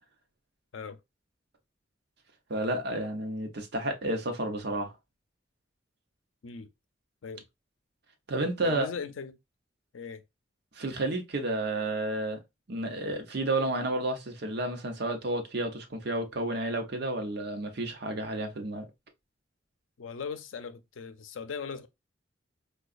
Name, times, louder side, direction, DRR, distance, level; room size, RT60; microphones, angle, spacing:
voice 1, 2.5-4.9 8.3-8.9 10.7-12.4 12.7-18.9, right 2 dB, 60° right, 0.8 m, -31 dB
voice 2, 8.6-9.4 9.9-10.2 20.0-21.9, left 5 dB, 90° left, 0.5 m, -39 dB
4.6 x 2.3 x 2.4 m
head